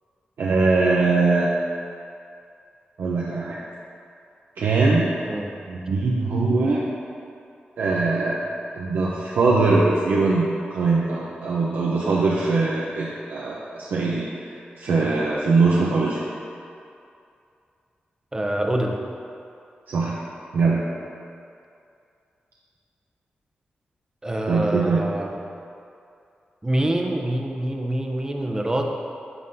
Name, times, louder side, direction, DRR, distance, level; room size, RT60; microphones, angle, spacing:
voice 1, 0.4-1.5 3.0-3.6 4.6-5.1 5.7-6.9 7.8-8.4 8.7-10.4 10.7-14.3 14.8-16.2 19.9-20.2 20.5-20.8 24.5-25.0, right 3 dB, 90° right, -5 dB, 0.6 m, -21 dB
voice 2, 18.3-19.0 24.2-25.3 26.6-29.0, right 1 dB, 20° right, 1 dB, 0.6 m, -25 dB
10.5 x 3.7 x 2.7 m, 2.5 s
cardioid pair, 80°, 3 cm